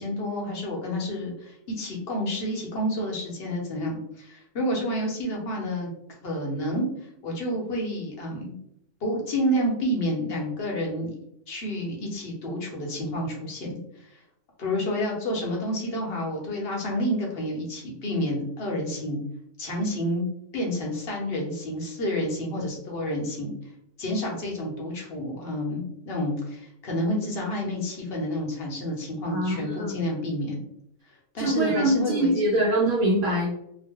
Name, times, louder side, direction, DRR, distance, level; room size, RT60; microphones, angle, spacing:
voice 1, 0.0-5.9 6.2-6.9 7.2-8.5 9.0-11.2 11.5-13.8 14.1-14.2 14.6-19.2 19.6-20.2 20.5-23.5 24.0-30.6 31.3-32.3, equal, 50° left, -2 dB, 0.9 m, -29 dB
voice 2, 29.3-30.1 31.4-33.5, right 1 dB, 65° right, -5 dB, 0.9 m, -24 dB
2.8 x 2.1 x 3.6 m, 0.75 s
omnidirectional pair, 1.6 m